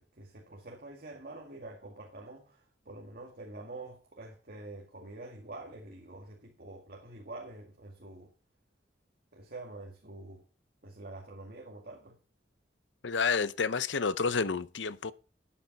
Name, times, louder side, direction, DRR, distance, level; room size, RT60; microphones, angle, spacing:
voice 1, 0.0-8.3 9.3-10.4 10.8-12.2, right 2 dB, 55° right, 2.0 m, -46 dB
voice 2, 13.0-15.1, left 5 dB, 90° left, 0.7 m, -29 dB
12.5 x 8.7 x 4.1 m
head